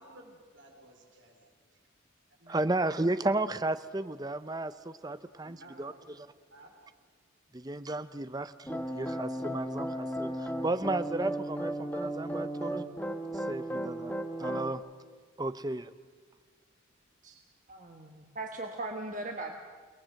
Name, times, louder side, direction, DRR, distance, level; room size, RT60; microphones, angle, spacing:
voice 1, 0.0-1.5 2.4-2.6 5.4-6.1 6.5-6.7, right 1 dB, 65° right, 1 dB, 4.9 m, -54 dB
voice 2, 2.5-5.9 7.5-12.8 13.3-14.8 15.4-15.9, right 2 dB, 20° right, 13 dB, 0.6 m, -33 dB
sound 1, 8.7-14.7, right 1 dB, 10° left, 1.5 m, -35 dB
voice 3, 17.7-19.5, right 2 dB, 40° right, 3 dB, 1.4 m, -39 dB
29.0 x 19.0 x 7.7 m, 1.5 s
head